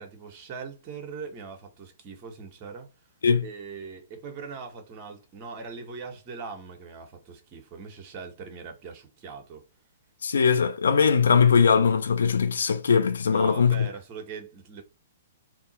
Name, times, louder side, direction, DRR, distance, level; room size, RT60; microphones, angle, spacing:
voice 1, 0.0-2.9 3.4-9.6 13.3-14.8, right 5 dB, 35° right, 1.5 m, -41 dB
voice 2, 10.2-13.9, left 6 dB, 80° left, 0.7 m, -21 dB
3.4 x 2.9 x 4.4 m
hypercardioid pair, 135°, 0 cm